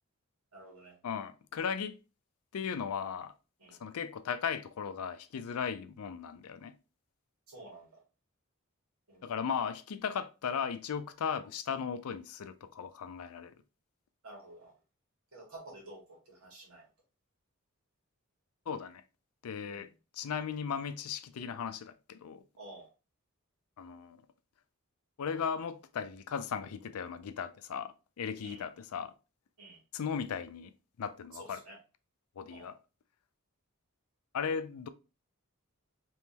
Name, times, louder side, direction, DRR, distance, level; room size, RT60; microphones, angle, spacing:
voice 1, 0.5-0.9 3.6-3.8 7.5-8.0 9.1-9.2 11.4-11.5 14.2-14.7 15.3-16.8 19.6-19.9 22.6-22.9 28.4-28.6 29.6-29.8 31.3-31.8 32.5-32.7, right 2 dB, 80° right, 1.8 m, -50 dB
voice 2, 1.0-2.0 2.5-3.3 3.8-6.7 9.2-13.5 18.7-19.0 19.4-19.9 20.1-22.4 23.8-24.2 25.2-29.1 29.9-30.7 31.0-31.6 32.4-32.8 34.3-34.9, left 7 dB, 80° left, 0.4 m, -37 dB
3.5 x 3.1 x 2.9 m
head